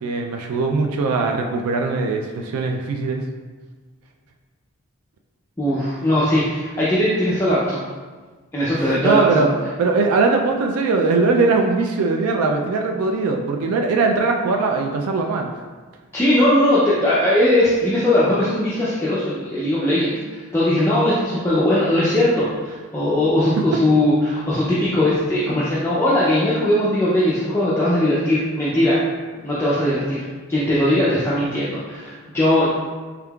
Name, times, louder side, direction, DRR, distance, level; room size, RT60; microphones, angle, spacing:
voice 1, 0.0-3.2 8.8-9.5 9.8-15.5 23.6-23.7, right 4 dB, 85° right, 3 dB, 0.3 m, -20 dB
voice 2, 5.6-7.8 8.5-9.5 16.1-29.0 29.4-30.2 30.5-32.8, left 1 dB, 10° left, -9 dB, 0.4 m, -19 dB
3.6 x 3.4 x 2.3 m, 1.4 s
head